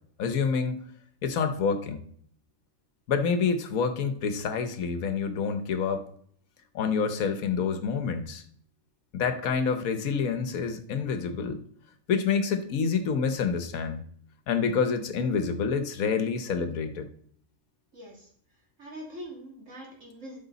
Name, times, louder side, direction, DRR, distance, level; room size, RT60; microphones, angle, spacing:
voice 1, 0.2-0.8 1.2-2.0 3.1-6.0 6.7-8.4 9.1-11.6 12.1-14.0 14.5-17.1, left 5 dB, 85° left, 9 dB, 1.4 m, -27 dB
voice 2, 17.9-18.3 18.8-20.4, equal, 65° right, -2 dB, 3.1 m, -43 dB
12.0 x 6.1 x 4.0 m, 0.62 s
omnidirectional pair, 1.4 m